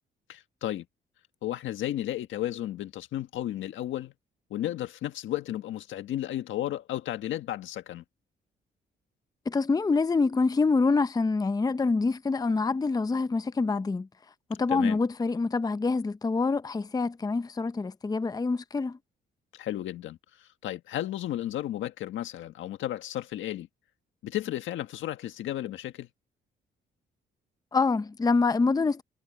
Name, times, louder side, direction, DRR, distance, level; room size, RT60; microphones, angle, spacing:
voice 1, 0.3-0.9 1.4-4.1 4.5-8.0 14.7-15.0 19.5-23.7 24.2-26.1, left 13 dB, 80° left, 1.6 m, -33 dB
voice 2, 9.5-14.1 14.5-19.0 27.7-29.0, left 4 dB, 20° left, 0.6 m, -26 dB
cardioid pair, 85°, 20 cm